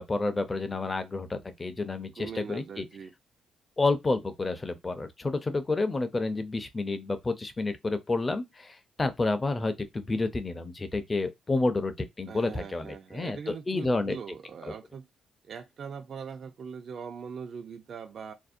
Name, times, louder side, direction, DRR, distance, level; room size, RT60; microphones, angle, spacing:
voice 1, 0.0-2.9 3.8-14.2, left 3 dB, 25° left, 0.4 m, -30 dB
voice 2, 2.2-3.1 12.3-15.1 15.4-18.3, right 6 dB, 55° right, 0.3 m, -41 dB
2.6 x 2.0 x 2.4 m
cardioid pair, 90°, 0 cm